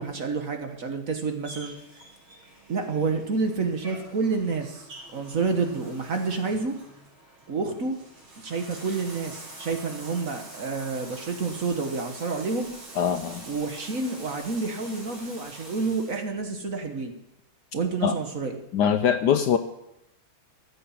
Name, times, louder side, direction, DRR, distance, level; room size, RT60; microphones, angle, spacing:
voice 1, 0.0-1.7 2.7-6.8 7.5-8.0 8.4-12.7 13.5-17.1 17.7-18.6, right 4 dB, 45° right, 5 dB, 1.5 m, -29 dB
Bathtub (filling or washing), 1.4-16.3, right 2 dB, 80° right, 4.8 m, -45 dB
voice 2, 13.0-13.5 18.0-18.2 18.7-19.6, left 8 dB, 65° left, 9 dB, 1.1 m, -22 dB
14.0 x 7.8 x 7.2 m, 0.84 s
omnidirectional pair, 2.2 m